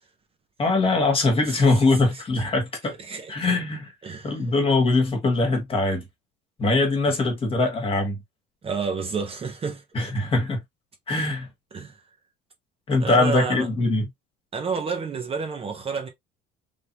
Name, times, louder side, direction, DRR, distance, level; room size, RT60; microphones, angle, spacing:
voice 1, 0.6-3.0 3.3-3.9 4.2-6.0 6.6-8.2 9.9-10.6 11.1-11.5 12.9-14.1, left 2 dB, 30° left, 1.5 m, -22 dB
voice 2, 3.0-3.3 4.0-4.4 8.6-9.8 11.7-12.0 13.0-13.7 14.5-16.1, right 5 dB, 30° right, 0.9 m, -30 dB
3.4 x 2.8 x 2.7 m
cardioid pair, 120°, 20 cm